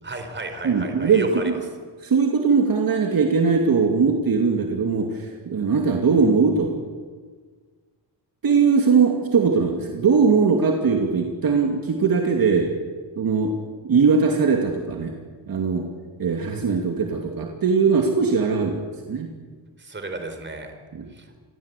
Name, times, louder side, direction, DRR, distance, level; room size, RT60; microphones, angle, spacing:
voice 1, 0.0-1.5 19.8-20.7 21.1-21.4, right 2 dB, 25° right, 6 dB, 4.5 m, -34 dB
voice 2, 0.6-1.6 2.0-6.7 8.4-12.7 13.2-13.5 13.8-15.1 15.5-15.9 16.2-19.3 20.9-21.1, right 5 dB, 50° right, 2 dB, 2.7 m, -20 dB
28.0 x 22.5 x 8.5 m, 1.5 s
wide cardioid pair, 145°, 46 cm